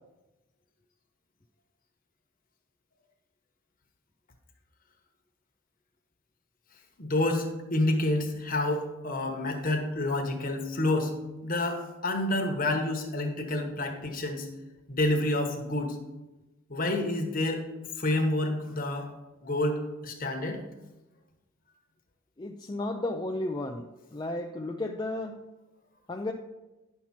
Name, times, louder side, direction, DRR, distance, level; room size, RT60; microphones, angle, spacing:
voice 1, 7.0-11.1 11.4-14.5 14.9-16.0 16.7-17.6 18.0-19.1 19.4-20.6, left 1 dB, 40° left, 3 dB, 1.2 m, -28 dB
voice 2, 22.4-25.5 26.1-26.3, left 2 dB, 20° left, 2 dB, 0.4 m, -33 dB
10.5 x 5.9 x 4.3 m, 1.1 s
head